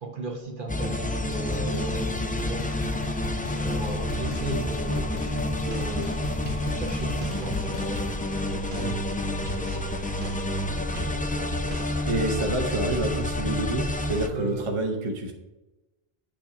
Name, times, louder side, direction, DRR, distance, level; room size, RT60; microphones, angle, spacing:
voice 1, 0.0-2.7 3.5-6.3 6.6-8.2 8.7-9.9 14.3-14.7, right 2 dB, 55° right, 3 dB, 1.2 m, -36 dB
sound 1, 0.7-14.3, left 1 dB, 15° left, 0.3 m, -29 dB
sound 2, 1.3-8.2, left 4 dB, 50° left, 0.6 m, -36 dB
sound 3, 5.6-12.0, equal, 85° right, 1.5 m, -41 dB
voice 2, 12.0-15.3, right 2 dB, 30° right, 3 dB, 0.8 m, -28 dB
8.6 x 3.4 x 5.9 m, 1.0 s
omnidirectional pair, 1.0 m